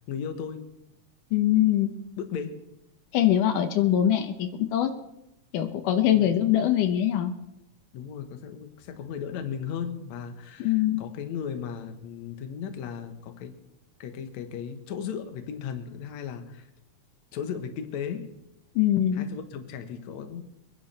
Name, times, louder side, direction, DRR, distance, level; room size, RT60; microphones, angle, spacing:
voice 1, 0.1-0.6 2.2-2.6 6.2-6.4 7.9-13.6 14.0-16.7 17.3-18.3 19.1-20.4, left 7 dB, 65° left, 7 dB, 2.4 m, -36 dB
voice 2, 1.3-1.9 3.1-4.9 5.5-7.3 10.6-11.0 18.8-19.3, left 11 dB, 85° left, 7 dB, 2.5 m, -23 dB
24.0 x 10.5 x 4.3 m, 0.86 s
omnidirectional pair, 3.6 m